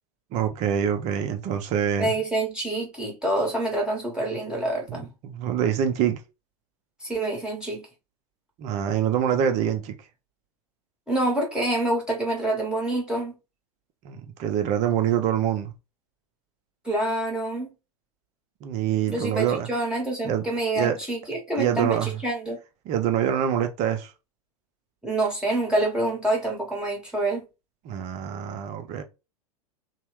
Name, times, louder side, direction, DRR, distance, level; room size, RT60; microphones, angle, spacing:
voice 1, 0.3-2.1 4.9-6.2 8.6-10.0 14.0-15.7 18.6-19.7 20.2-20.4 20.8-21.0 21.6-22.1 22.9-24.1 27.8-29.0, right 9 dB, 35° right, 0.7 m, -25 dB
voice 2, 2.0-5.1 7.0-7.8 11.1-13.3 16.8-17.7 19.1-22.6 25.0-27.4, right 2 dB, 5° right, 1.1 m, -27 dB
3.1 x 2.1 x 3.1 m
figure-of-eight pair, 95°, 19 cm